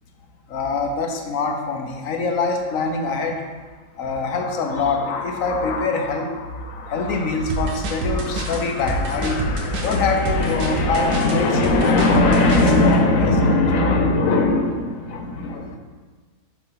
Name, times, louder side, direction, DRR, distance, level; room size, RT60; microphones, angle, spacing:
voice 1, 0.5-3.4 4.0-15.7, left 3 dB, 65° left, 3 dB, 1.1 m, -21 dB
sound 1, 7.5-12.8, right 2 dB, 80° right, 1.3 m, -27 dB
7.0 x 3.1 x 5.6 m, 1.4 s
omnidirectional pair, 1.7 m